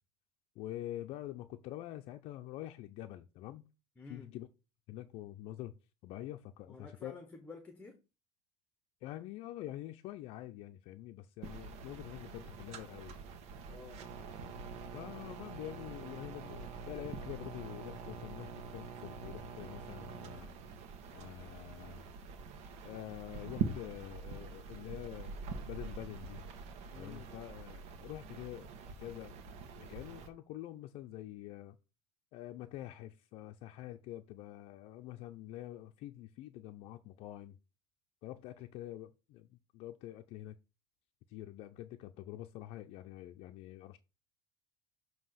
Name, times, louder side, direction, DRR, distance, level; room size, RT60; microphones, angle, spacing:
voice 1, 0.6-3.6 4.1-4.5 4.9-5.8 6.0-7.1 9.0-13.2 14.9-20.5 21.1-22.0 22.8-25.4 25.7-26.4 27.0-28.7 29.0-29.4 29.8-31.8 32.3-37.6 38.2-40.5 41.3-44.0, left 14 dB, 55° left, 0.5 m, -46 dB
voice 2, 4.0-4.3 6.7-8.0 13.7-14.1 26.9-27.3, left 3 dB, 10° left, 1.0 m, -51 dB
sound 1, 11.4-30.3, right 5 dB, 65° right, 1.3 m, -45 dB
7.3 x 2.9 x 5.7 m
supercardioid pair, 135°, 12 cm